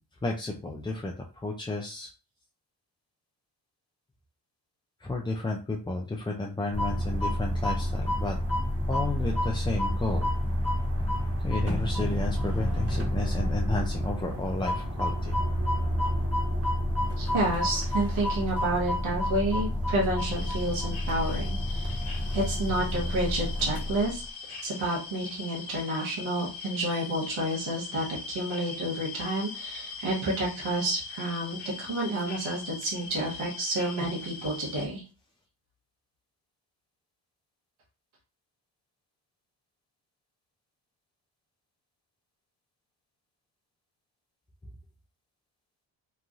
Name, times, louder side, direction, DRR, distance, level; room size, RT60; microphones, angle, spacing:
voice 1, 0.2-2.1 5.0-8.4 8.9-10.3 11.4-15.4, left 2 dB, 10° left, 0 dB, 0.3 m, -32 dB
sound 1, 6.7-24.2, equal, 30° right, 1.1 m, -29 dB
voice 2, 17.2-22.0 22.3-24.2 24.6-35.0, right 1 dB, 75° right, -3 dB, 1.1 m, -30 dB
sound 2, 20.2-34.9, left 5 dB, 65° left, 0.9 m, -41 dB
3.0 x 2.5 x 2.4 m, 0.34 s
cardioid pair, 65°, 48 cm